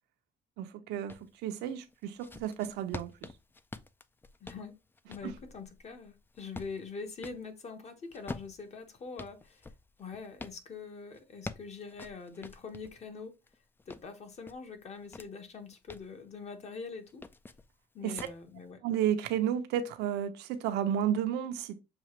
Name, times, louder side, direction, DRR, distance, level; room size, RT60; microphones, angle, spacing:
voice 1, 0.6-3.3 5.2-5.3 18.0-18.3 18.8-21.8, right 10 dB, 85° right, 0.7 m, -32 dB
sound 1, 1.1-1.3 1.9-7.5 8.1-10.6 11.1-13.0 13.5-15.3 15.7-16.1 17.0-17.7 18.2-18.4, left 3 dB, 10° left, 0.3 m, -46 dB
voice 2, 4.4-4.7 5.1-9.7 10.0-13.4 13.9-17.2 17.9-18.8, left 5 dB, 40° left, 1.2 m, -44 dB
6.9 x 2.4 x 3.0 m
cardioid pair, 110°, 17 cm